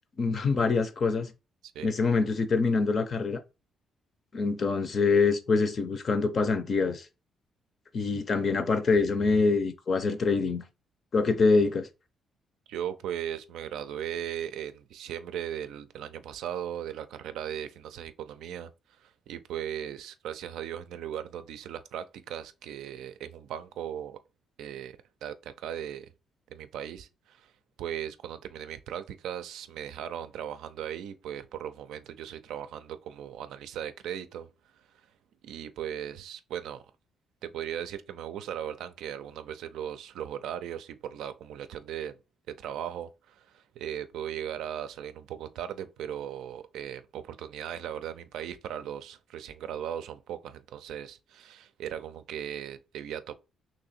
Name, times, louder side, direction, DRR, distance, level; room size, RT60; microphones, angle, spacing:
voice 1, 0.2-1.3 1.8-3.4 4.3-7.0 7.9-10.6 11.1-11.9, left 4 dB, 45° left, 0.6 m, -25 dB
voice 2, 12.7-18.7 19.3-24.2 24.6-26.1 26.5-27.4 27.8-34.5 35.4-36.8 37.4-42.1 42.5-43.1 43.8-53.3, right 10 dB, 85° right, 0.4 m, -37 dB
3.0 x 2.8 x 4.1 m
cardioid pair, 90°, 0 cm